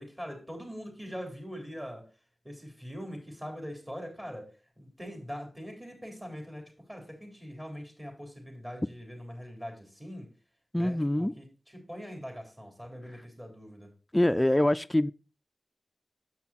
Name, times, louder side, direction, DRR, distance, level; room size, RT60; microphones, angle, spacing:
voice 1, 0.0-2.0 2.4-4.5 4.8-10.3 10.8-13.9, equal, 20° right, 3.6 m, -42 dB
voice 2, 10.7-11.3 14.1-15.1, left 1 dB, 15° left, 0.3 m, -24 dB
7.7 x 5.9 x 4.2 m
cardioid pair, 45°, 0 cm